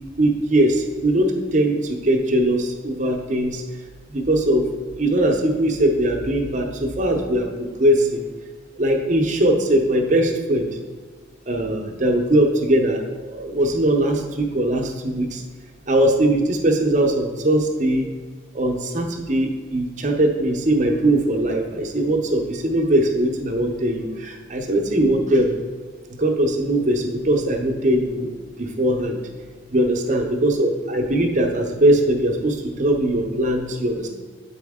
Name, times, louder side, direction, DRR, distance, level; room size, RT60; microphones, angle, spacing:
voice 1, 0.2-3.6 4.1-4.6 5.0-8.3 8.8-10.7 11.5-13.0 13.3-15.4 15.9-18.0 18.5-25.6 26.2-28.3 28.6-29.2 29.7-34.1, right 1 dB, 40° right, 2 dB, 0.7 m, -20 dB
8.4 x 4.2 x 3.6 m, 1.4 s
head